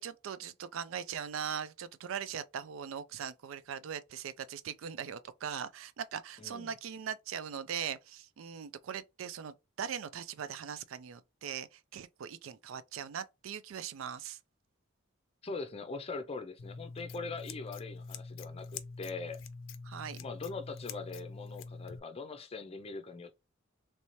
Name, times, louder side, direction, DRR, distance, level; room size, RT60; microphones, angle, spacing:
voice 1, 0.0-14.4 19.8-20.2, right 8 dB, 90° right, 0.4 m, -40 dB
voice 2, 6.4-6.7 15.4-19.4 20.2-23.4, left 4 dB, 30° left, 0.5 m, -42 dB
Scissors, 16.6-22.0, left 4 dB, 80° left, 0.5 m, -45 dB
3.2 x 2.7 x 3.0 m
head